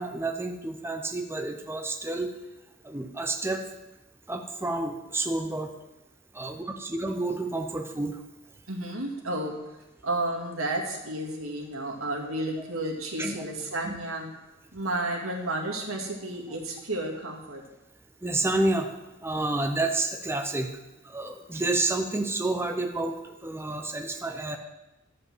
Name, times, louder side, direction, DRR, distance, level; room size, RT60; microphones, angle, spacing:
voice 1, 0.0-2.3 2.8-3.6 4.3-5.7 6.3-8.2 13.2-13.4 13.8-14.0 18.2-18.9 19.2-20.7 21.0-24.6, right 2 dB, 10° right, 4 dB, 0.7 m, -29 dB
voice 2, 8.7-9.6 10.0-14.3 14.7-17.6, right 1 dB, 85° right, 0 dB, 2.2 m, -32 dB
12.5 x 5.3 x 7.7 m, 0.99 s
head